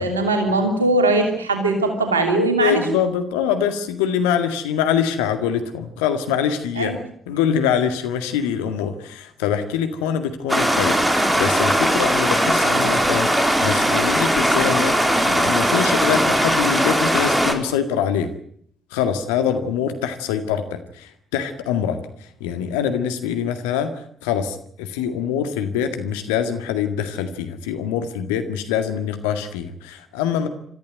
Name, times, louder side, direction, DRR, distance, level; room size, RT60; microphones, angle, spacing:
voice 1, 0.0-2.8 6.8-7.0, right 2 dB, 90° right, 5 dB, 2.9 m, -20 dB
voice 2, 2.6-6.9 7.3-18.3 18.9-30.5, left 8 dB, 75° left, 7 dB, 1.9 m, -24 dB
Stream, 10.5-17.5, equal, 10° right, 4.5 m, -19 dB
27.0 x 14.5 x 9.3 m, 0.67 s
figure-of-eight pair, 45°, 0 cm